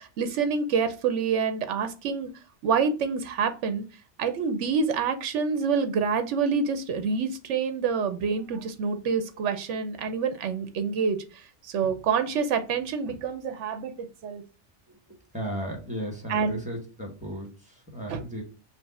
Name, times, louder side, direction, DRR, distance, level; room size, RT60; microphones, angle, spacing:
voice 1, 0.0-2.3 2.6-3.8 4.2-11.2 11.6-14.4 16.3-16.6 18.1-18.2, right 5 dB, 85° right, 9 dB, 1.0 m, -27 dB
voice 2, 14.9-18.4, right 1 dB, 5° right, -1 dB, 1.2 m, -36 dB
5.1 x 2.1 x 4.1 m, 0.33 s
omnidirectional pair, 1.2 m